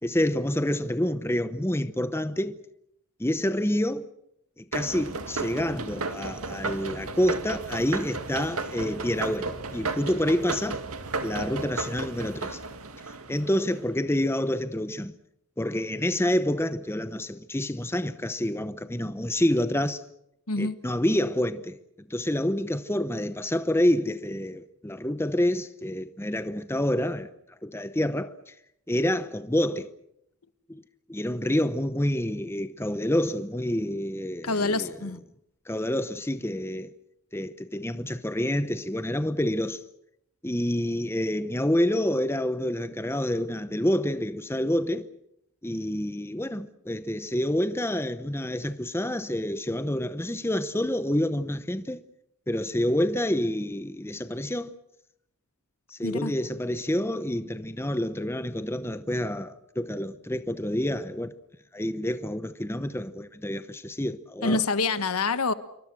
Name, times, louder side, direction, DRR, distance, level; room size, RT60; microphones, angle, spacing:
voice 1, 0.0-2.6 3.2-4.1 4.6-10.8 11.2-12.6 13.3-15.1 15.6-20.0 20.6-21.8 22.1-27.3 27.6-28.5 28.9-29.9 30.7-30.8 31.1-34.9 35.7-36.9 37.3-39.8 40.4-45.1 45.6-52.0 52.5-54.7 55.9-61.3 61.7-64.6, left 1 dB, 10° left, 0.8 m, -28 dB
sound 1, 4.7-13.8, right 3 dB, 80° right, 2.1 m, -34 dB
voice 2, 34.4-35.2 56.0-56.3 64.4-65.5, left 3 dB, 85° left, 1.4 m, -26 dB
27.5 x 24.0 x 6.1 m
head